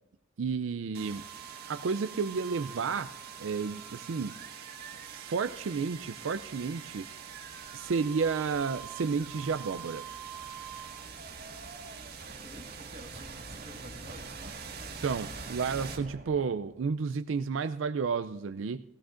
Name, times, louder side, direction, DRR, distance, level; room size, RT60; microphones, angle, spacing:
voice 1, 0.4-1.2 1.7-3.1 3.4-4.3 5.1-7.1 7.7-10.0 15.0-18.8, right 5 dB, 80° right, 10 dB, 0.4 m, -31 dB
sound 1, 0.9-16.8, right 6 dB, 50° right, 1.7 m, -44 dB
voice 2, 12.2-14.6, right 1 dB, 35° right, 1 dB, 1.5 m, -50 dB
17.5 x 15.5 x 2.5 m, 0.90 s
head